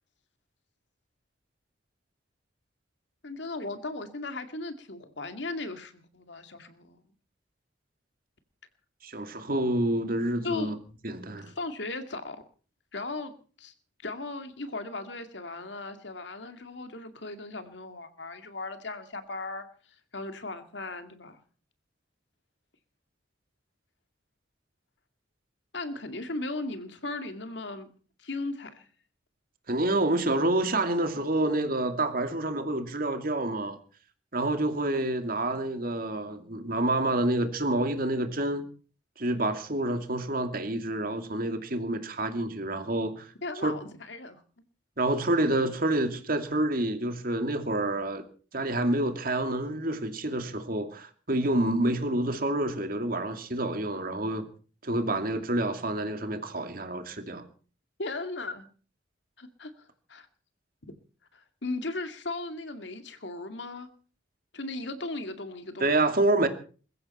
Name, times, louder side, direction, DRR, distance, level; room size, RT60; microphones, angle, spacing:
voice 1, 3.2-7.0 10.4-10.8 11.5-12.4 12.9-13.3 13.6-13.7 14.0-19.7 20.1-21.4 25.7-27.9 28.2-28.8 43.4-44.4 58.0-58.7 59.4-59.7 60.1-60.3 61.3-63.9 64.5-66.1, left 2 dB, 70° left, 2.3 m, -37 dB
voice 2, 9.0-10.7 11.0-11.5 29.7-33.8 34.3-38.6 39.2-43.3 43.6-43.7 45.0-48.2 48.5-54.5 54.8-57.5 65.8-66.5, right 1 dB, 50° right, 2.5 m, -28 dB
21.5 x 15.0 x 4.4 m
head